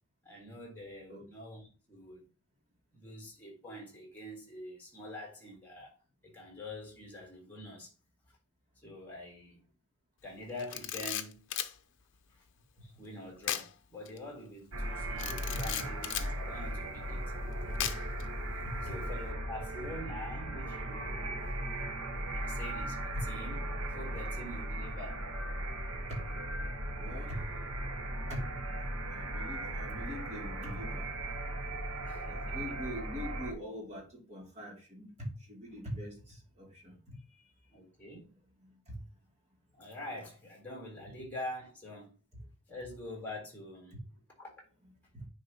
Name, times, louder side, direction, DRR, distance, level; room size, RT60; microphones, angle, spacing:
voice 1, 0.2-2.2 2.9-6.0 6.2-7.9 8.8-9.6 10.2-11.4 12.8-17.3 17.6-17.7 18.8-21.5 22.3-25.2 32.0-32.6 37.7-38.3 39.7-42.2 42.7-44.0 44.4-44.5, left 1 dB, 10° left, 3.5 m, -45 dB
Camera, 10.6-11.7 13.4-13.7 14.1-14.2 15.2-16.3 17.8-18.2, left 11 dB, 60° left, 0.7 m, -36 dB
sound 1, 14.7-33.5, right 1 dB, 70° right, 1.1 m, -37 dB
voice 2, 15.2-15.9 17.6-17.9 18.6-18.9 23.1-23.2 26.1-26.2 26.9-27.5 28.3-28.5 28.8-31.1 32.3-37.4 38.6-39.0 41.2-41.3 45.1-45.3, equal, 30° right, 2.5 m, -43 dB
9.7 x 4.6 x 2.9 m
head